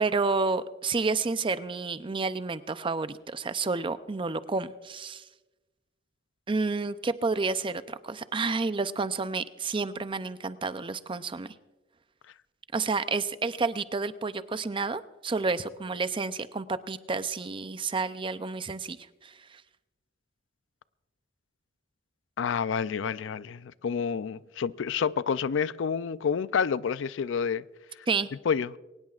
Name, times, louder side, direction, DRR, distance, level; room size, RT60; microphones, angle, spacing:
voice 1, 0.0-5.2 6.5-11.5 12.7-19.0 19.2-19.6 28.1-28.3, right 4 dB, 25° right, 0.5 m, -30 dB
voice 2, 22.4-27.6 28.5-28.8, left 6 dB, 80° left, 0.4 m, -29 dB
23.0 x 19.0 x 2.4 m
head